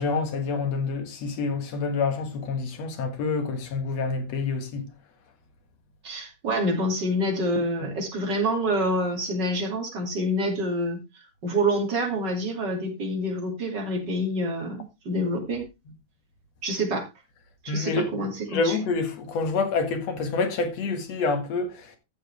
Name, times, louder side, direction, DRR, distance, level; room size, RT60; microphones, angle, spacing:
voice 1, 0.0-4.9 7.8-7.9 17.7-18.1 18.5-22.0, left 4 dB, 60° left, 2.7 m, -27 dB
voice 2, 6.0-11.0 11.4-15.6 16.6-17.1 17.6-18.8, equal, 35° right, 3.0 m, -27 dB
14.0 x 7.1 x 3.4 m
omnidirectional pair, 3.4 m